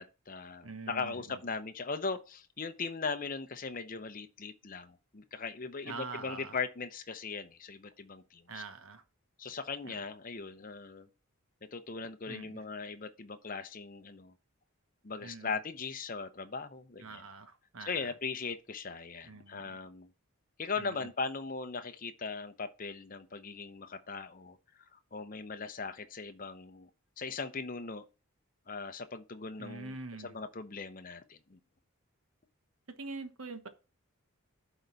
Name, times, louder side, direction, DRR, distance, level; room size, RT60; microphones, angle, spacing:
voice 1, 0.0-8.6 9.4-11.1 11.7-14.3 15.0-17.2 17.8-20.1 20.6-24.6 24.9-26.9 27.2-28.0 28.7-31.6, left 4 dB, 40° left, 0.8 m, -39 dB
voice 2, 0.6-1.4 5.8-6.6 8.5-9.0 9.8-10.0 12.3-12.6 15.2-15.5 17.0-18.1 19.2-19.8 20.8-21.1 29.6-30.3 32.9-33.7, right 3 dB, 70° right, 1.2 m, -45 dB
11.0 x 4.0 x 4.7 m
head